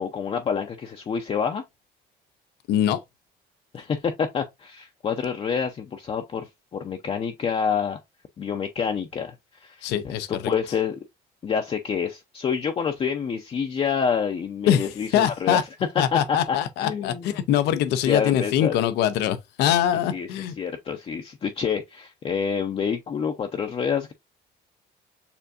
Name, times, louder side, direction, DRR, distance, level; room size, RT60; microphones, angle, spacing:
voice 1, 0.0-1.6 3.7-8.0 8.4-9.3 9.6-11.0 11.4-15.6 16.1-16.4 16.8-17.3 18.1-18.8 20.1-20.3 20.6-24.1, left 6 dB, 35° left, 0.5 m, -27 dB
voice 2, 2.7-3.0 9.8-10.3 14.7-15.6 16.0-20.6, left 10 dB, 85° left, 0.5 m, -23 dB
6.8 x 2.5 x 2.5 m
cardioid pair, 110°, 17 cm